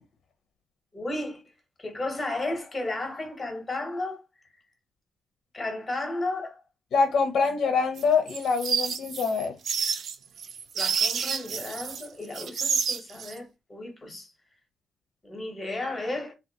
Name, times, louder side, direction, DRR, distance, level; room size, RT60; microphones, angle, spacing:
voice 1, 0.9-1.4 1.8-4.2 5.5-6.6 10.7-14.3 15.2-16.3, left 2 dB, 15° left, 1.0 m, -33 dB
voice 2, 6.9-9.5, left 5 dB, 55° left, 0.5 m, -24 dB
sound 1, 8.0-12.1 12.3-13.3, right 6 dB, 50° right, 0.3 m, -29 dB
3.6 x 2.3 x 2.7 m
cardioid pair, 165°, 0 cm